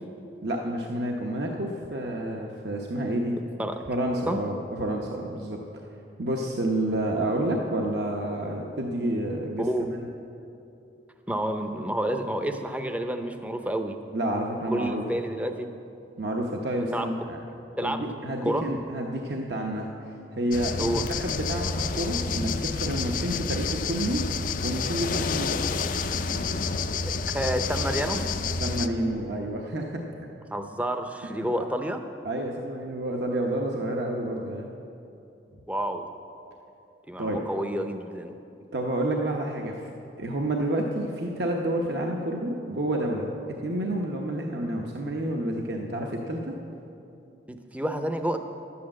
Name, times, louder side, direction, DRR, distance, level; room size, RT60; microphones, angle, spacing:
voice 1, 0.4-3.4 3.9-5.6 6.2-10.0 14.1-15.0 16.2-17.4 17.8-24.2 24.6-25.7 28.6-30.0 31.2-31.5 32.2-34.7 37.2-37.4 38.7-39.8 40.2-43.3 43.6-46.6, right 1 dB, 65° right, 0 dB, 0.9 m, -29 dB
voice 2, 11.3-14.0 14.7-15.7 16.9-17.1 17.8-18.0 18.4-18.6 20.8-21.0 27.3-28.2 30.5-32.0 35.7-36.1 37.1-38.3 47.5-48.4, right 1 dB, 10° right, 7 dB, 0.6 m, -29 dB
sound 1, 20.5-28.9, left 4 dB, 45° left, 0.4 m, -29 dB
12.0 x 8.5 x 7.5 m, 2.7 s
head